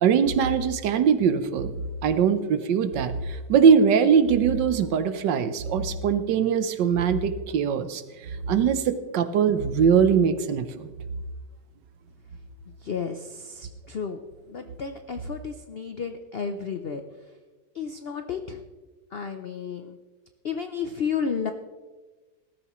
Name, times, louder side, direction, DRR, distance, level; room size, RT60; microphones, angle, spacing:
voice 1, 0.0-1.7 2.0-10.9, right 7 dB, 75° right, 10 dB, 1.5 m, -22 dB
voice 2, 12.8-14.2 14.5-17.0 17.7-18.6 19.1-20.0 20.4-21.5, left 6 dB, 75° left, 7 dB, 0.5 m, -32 dB
19.5 x 13.0 x 3.1 m, 1.3 s
omnidirectional pair, 2.0 m